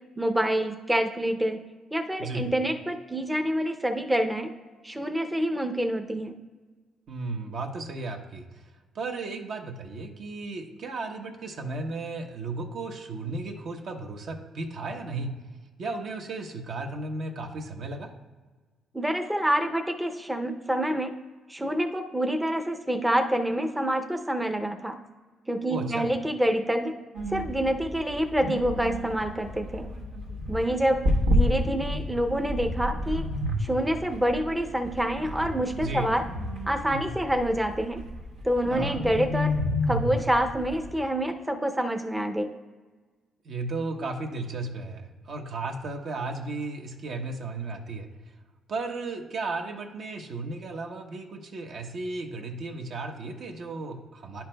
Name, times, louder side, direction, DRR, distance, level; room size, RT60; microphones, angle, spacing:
voice 1, 0.2-1.6 1.9-4.5 4.8-6.3 18.9-21.2 21.5-25.0 25.5-27.0 27.3-29.9 30.5-33.3 33.6-36.2 36.7-38.0 38.4-39.6 39.9-42.5, right 1 dB, 10° right, 5 dB, 0.5 m, -27 dB
voice 2, 7.1-8.6 8.9-15.3 15.8-18.1 25.7-26.1 35.7-36.1 38.7-39.0 43.4-48.1 48.7-54.4, right 3 dB, 65° right, 3 dB, 0.9 m, -34 dB
sound 1, 27.1-40.9, left 1 dB, 90° right, 1.1 m, -30 dB
10.5 x 5.7 x 2.2 m, 1.4 s
cardioid pair, 90°, 0 cm